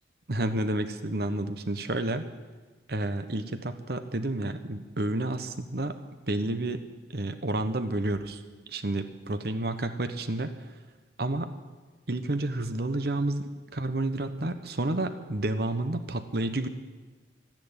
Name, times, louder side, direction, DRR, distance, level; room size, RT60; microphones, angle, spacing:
voice 1, 0.3-2.3 2.9-6.0 6.3-6.8 7.1-8.4 8.7-10.5 11.2-11.5 12.1-16.7, right 2 dB, 60° right, 9 dB, 1.1 m, -30 dB
13.0 x 10.5 x 9.9 m, 1.3 s
head